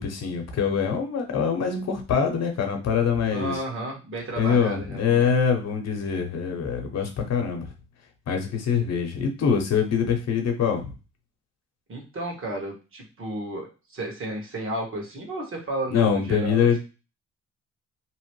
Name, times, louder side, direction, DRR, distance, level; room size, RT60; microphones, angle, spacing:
voice 1, 0.0-3.6 4.4-7.7 8.3-10.9 15.9-16.8, left 6 dB, 60° left, 3 dB, 0.9 m, -24 dB
voice 2, 3.3-5.3 11.9-16.8, right 1 dB, 45° right, 1 dB, 1.3 m, -33 dB
3.0 x 2.1 x 3.1 m, 0.31 s
cardioid pair, 90°, 30 cm